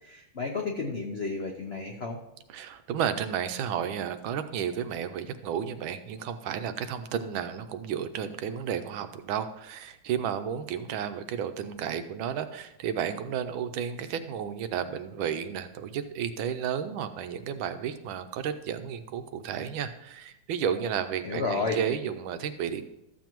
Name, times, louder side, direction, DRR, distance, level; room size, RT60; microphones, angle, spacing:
voice 1, 0.0-2.2 21.2-21.8, left 4 dB, 75° left, 1 dB, 0.5 m, -32 dB
voice 2, 2.5-22.8, right 8 dB, 80° right, 10 dB, 1.4 m, -32 dB
13.5 x 7.3 x 3.0 m, 0.87 s
omnidirectional pair, 2.2 m